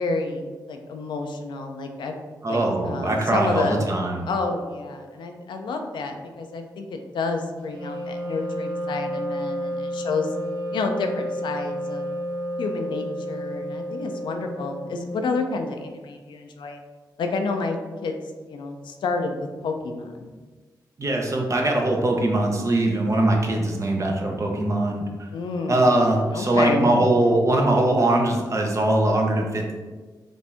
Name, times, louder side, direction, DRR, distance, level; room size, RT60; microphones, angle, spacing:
voice 1, 0.0-2.2 2.5-3.8 4.3-10.3 10.7-12.1 12.6-16.8 17.2-19.3 19.6-20.3 25.3-25.9 26.3-26.9, left 3 dB, 90° left, 5 dB, 0.5 m, -29 dB
voice 2, 2.4-4.3 21.0-25.0 25.7-29.7, right 1 dB, 40° right, 1 dB, 0.9 m, -21 dB
Wind instrument woodwind instrument, 7.6-15.5, equal, 75° right, 1.2 m, -31 dB
5.1 x 2.6 x 3.5 m, 1.4 s
cardioid pair, 70°, 8 cm